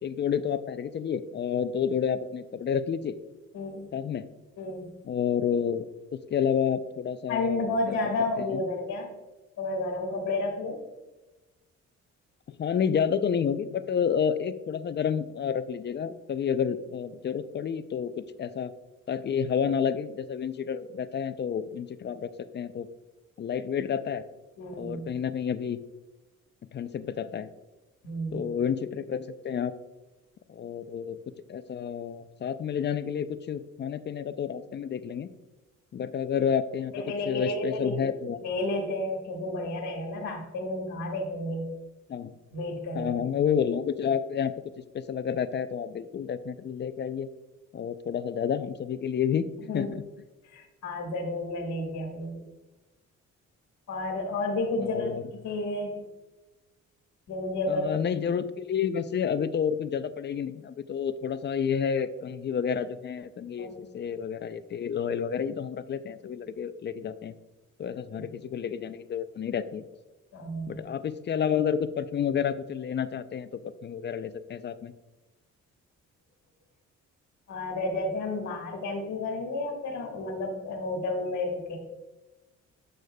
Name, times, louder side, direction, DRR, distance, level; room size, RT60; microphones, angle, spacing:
voice 1, 0.0-3.2 3.9-4.3 5.0-5.9 6.3-8.6 12.6-18.7 19.1-22.9 23.4-24.2 24.8-25.8 26.7-27.5 28.3-29.7 30.5-31.2 31.5-35.3 35.9-38.4 42.1-42.3 43.0-44.5 44.9-47.3 47.7-49.5 49.7-50.0 54.8-55.3 57.7-67.3 67.8-69.8 70.7-74.9, left 7 dB, 35° left, 13 dB, 0.4 m, -30 dB
voice 2, 3.5-3.9 4.6-4.9 7.3-9.1 9.6-10.8 24.6-25.1 28.0-28.4 36.9-38.0 38.4-41.7 42.5-43.2 49.7-49.9 50.4-52.4 53.9-55.1 55.4-56.0 57.3-57.9 63.6-63.8 70.3-70.8 77.5-81.8, left 2 dB, 70° left, -1 dB, 1.4 m, -31 dB
8.4 x 6.4 x 2.2 m, 1.1 s
cardioid pair, 90°, 30 cm